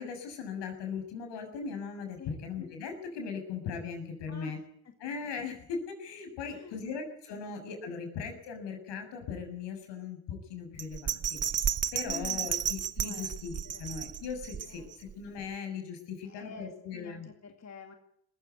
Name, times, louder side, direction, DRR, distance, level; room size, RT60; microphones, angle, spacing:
voice 1, 0.0-4.6 5.0-11.6 11.9-13.5 13.8-17.3, left 5 dB, 70° left, 5 dB, 7.0 m, -39 dB
voice 2, 4.3-4.9 6.4-6.8 7.3-7.4 12.0-12.5 13.0-13.3 13.6-13.9 14.7-14.9 16.2-18.0, left 5 dB, 35° left, 5 dB, 2.4 m, -48 dB
Bell, 10.8-15.1 15.5-15.6, right 8 dB, 35° right, 1.2 m, -33 dB
20.0 x 15.5 x 9.5 m, 0.72 s
supercardioid pair, 75°, 44 cm